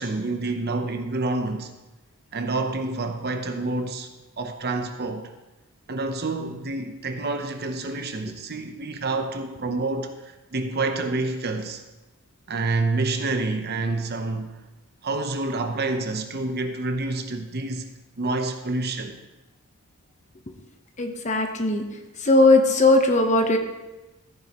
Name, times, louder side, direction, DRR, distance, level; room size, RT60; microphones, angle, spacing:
voice 1, 0.0-1.7 2.3-4.1 4.4-5.3 5.9-11.8 12.5-14.6 15.0-17.9 18.2-19.2, right 3 dB, 50° right, 0.9 m, -28 dB
voice 2, 21.0-21.8 22.2-23.6, left 2 dB, 35° left, 1.0 m, -18 dB
14.5 x 9.2 x 3.0 m
head